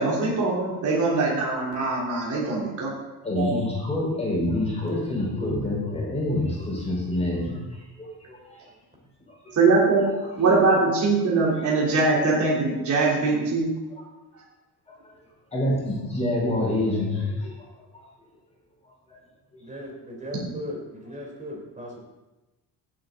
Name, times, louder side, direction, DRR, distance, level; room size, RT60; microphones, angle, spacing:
voice 1, 0.0-2.9 3.4-3.5 9.5-10.0 10.4-13.7 20.3-20.5, right 3 dB, 45° right, -5 dB, 3.7 m, -22 dB
voice 2, 3.2-7.6 8.0-8.7 9.4-9.5 10.2-10.5 11.6-11.7 14.9-15.0 15.5-17.5 17.9-18.0, left 1 dB, 15° left, -4 dB, 4.7 m, -27 dB
voice 3, 19.6-22.0, left 1 dB, 20° right, -1 dB, 3.9 m, -37 dB
16.0 x 8.6 x 4.0 m, 1.1 s
cardioid pair, 130°, 41 cm